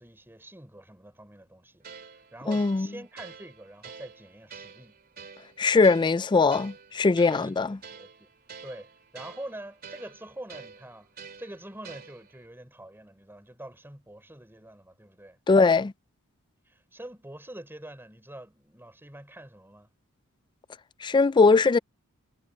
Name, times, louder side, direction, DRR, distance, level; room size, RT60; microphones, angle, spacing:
voice 1, 0.0-1.9 2.1-5.0 7.2-7.6 7.9-8.3 8.6-15.4 16.7-19.9, right 1 dB, 10° right, 4.8 m, -45 dB
sound 1, 1.8-12.5, right 6 dB, 45° right, 2.8 m, -48 dB
voice 2, 2.5-2.9 5.6-7.7 15.5-15.9 21.0-21.8, left 4 dB, 20° left, 0.3 m, -20 dB
head